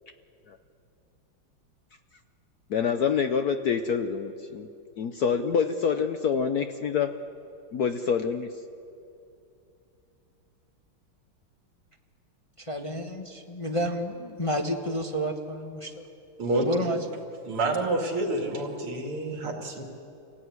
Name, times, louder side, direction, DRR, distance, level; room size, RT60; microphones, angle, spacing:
voice 1, 2.7-4.7 5.0-7.1 7.7-8.5, left 6 dB, 65° left, 8 dB, 1.0 m, -26 dB
voice 2, 12.7-15.9 16.6-17.0, equal, 20° left, 2 dB, 1.1 m, -30 dB
voice 3, 16.4-16.9 17.5-19.8, right 2 dB, 85° right, 2 dB, 3.7 m, -28 dB
27.0 x 17.0 x 9.5 m, 2.7 s
omnidirectional pair, 2.4 m